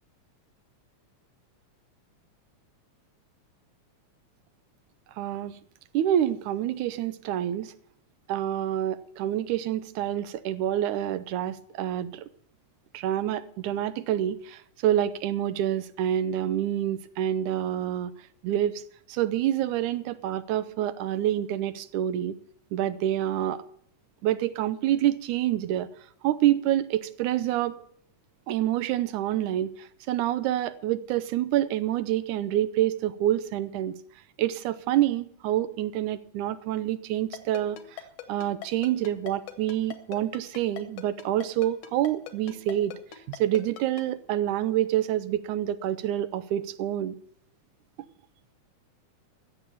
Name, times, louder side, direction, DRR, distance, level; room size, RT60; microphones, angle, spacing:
voice 1, 5.2-5.6 5.9-7.7 8.3-12.3 12.9-18.1 18.4-18.8 19.1-22.3 22.7-23.6 24.2-25.9 26.2-27.8 28.5-33.9 34.4-38.0 38.3-42.9 43.3-47.2, right 12 dB, 90° right, 14 dB, 2.2 m, -27 dB
Ringtone, 37.3-44.0, left 12 dB, 80° left, 2.8 m, -40 dB
15.5 x 6.9 x 8.6 m, 0.65 s
omnidirectional pair, 3.4 m